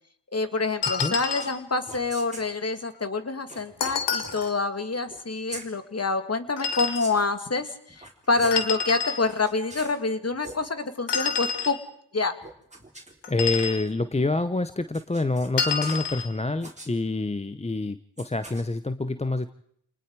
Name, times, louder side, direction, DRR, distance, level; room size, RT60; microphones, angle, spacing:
voice 1, 0.3-11.8 12.1-12.3, left 3 dB, 35° left, 9 dB, 2.2 m, -27 dB
sound 1, 0.8-1.6 3.8-4.5 6.6-7.1 8.5-9.2 11.1-11.8 13.2-13.8 15.6-16.3, left 6 dB, 80° left, 2.2 m, -28 dB
sound 2, 1.4-1.6 1.9-2.5 3.5-4.4 5.1-5.7 6.7-7.3 7.9-8.7 9.2-10.0 10.3-10.6 12.4-13.9 14.9-16.1 16.6-16.9 18.2-18.6, right 2 dB, 15° right, 3.9 m, -43 dB
voice 2, 13.3-19.5, left 2 dB, 15° left, 12 dB, 0.8 m, -27 dB
28.5 x 20.0 x 4.7 m, 0.70 s
cardioid pair, 60°, 42 cm